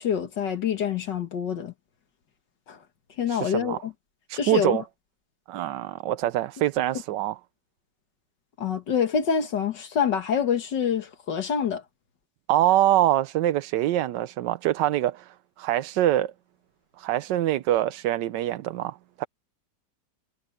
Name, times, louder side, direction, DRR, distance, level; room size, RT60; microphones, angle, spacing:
voice 1, 0.0-1.7 2.7-2.8 3.2-3.9 4.4-4.8 8.6-11.8, left 7 dB, 80° left, 2.1 m, -26 dB
voice 2, 3.3-3.8 4.3-4.8 5.5-7.4 12.5-16.3 17.0-19.3, right 13 dB, 80° right, 1.3 m, -24 dB
omnidirectional pair, 1.9 m